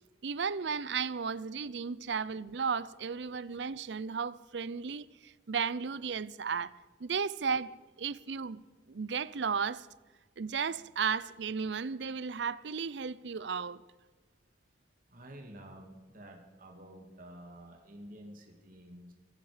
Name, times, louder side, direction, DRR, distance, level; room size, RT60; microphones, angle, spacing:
voice 1, 0.2-6.7 7.0-8.6 8.9-9.9 10.4-13.8, right 6 dB, 75° right, 0.6 m, -34 dB
voice 2, 15.1-19.1, right 1 dB, 50° right, 2.3 m, -50 dB
24.0 x 12.0 x 5.0 m
head